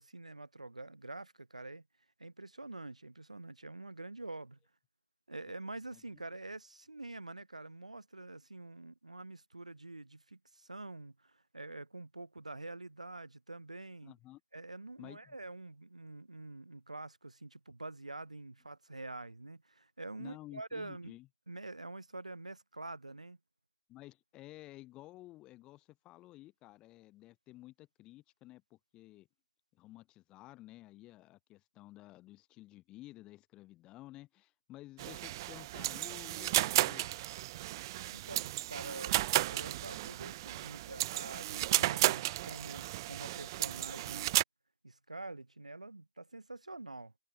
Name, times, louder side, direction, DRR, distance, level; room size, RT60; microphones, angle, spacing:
voice 1, 0.0-1.8 2.2-4.6 5.3-14.1 14.5-21.2 21.5-23.4 38.1-39.2 39.5-44.4 44.8-47.1, right 2 dB, 90° right, 6.3 m, -46 dB
voice 2, 14.0-14.4 15.0-15.4 20.2-21.3 23.9-29.3 29.7-37.2, left 17 dB, 25° left, 7.0 m, -53 dB
sound 1, 35.0-44.4, right 16 dB, 40° right, 0.3 m, -33 dB
figure-of-eight pair, 125°, 4 cm